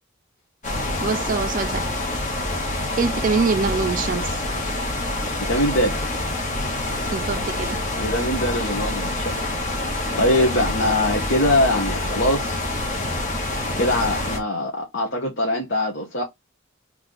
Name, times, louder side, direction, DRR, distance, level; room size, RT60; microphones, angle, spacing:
sound 1, 0.6-14.4, left 1 dB, 40° left, 1.3 m, -26 dB
voice 1, 1.0-1.9 3.0-4.4 7.1-7.8, right 4 dB, 40° right, 0.4 m, -24 dB
voice 2, 5.5-6.1 8.0-9.5 9.8-12.6 13.8-16.2, left 1 dB, 60° left, 1.3 m, -23 dB
3.5 x 3.2 x 3.9 m
head